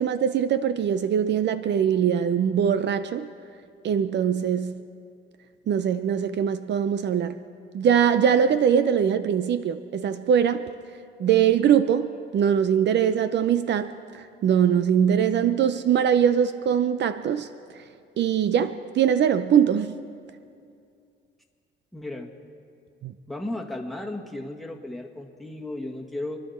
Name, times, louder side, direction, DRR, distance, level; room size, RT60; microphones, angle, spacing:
voice 1, 0.0-3.3 3.8-4.8 5.7-7.4 7.7-10.6 11.2-13.9 14.4-17.5 18.2-19.9 23.0-23.1, right 8 dB, 60° right, 12 dB, 0.6 m, -22 dB
voice 2, 21.9-22.3 23.3-26.4, left 1 dB, ahead, 0 dB, 1.8 m, -34 dB
27.5 x 11.0 x 4.3 m, 2.4 s
cardioid pair, 90°, 20 cm